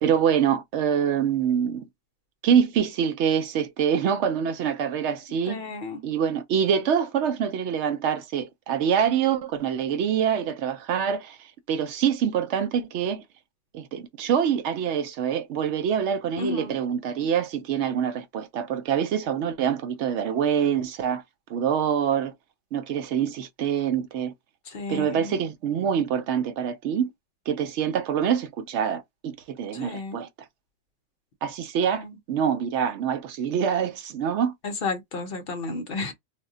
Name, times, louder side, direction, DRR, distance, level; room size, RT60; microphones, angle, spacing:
voice 1, 0.0-1.9 2.4-5.6 6.0-11.4 11.7-13.2 13.7-21.2 21.5-22.3 22.7-24.3 24.9-27.1 27.5-30.3 31.4-34.5, right 8 dB, 75° right, 0.8 m, -25 dB
voice 2, 5.5-6.0 16.4-16.8 24.7-25.4 29.7-30.2 31.9-32.2 34.6-36.1, left 3 dB, 55° left, 0.8 m, -32 dB
2.2 x 2.1 x 3.6 m
omnidirectional pair, 1.2 m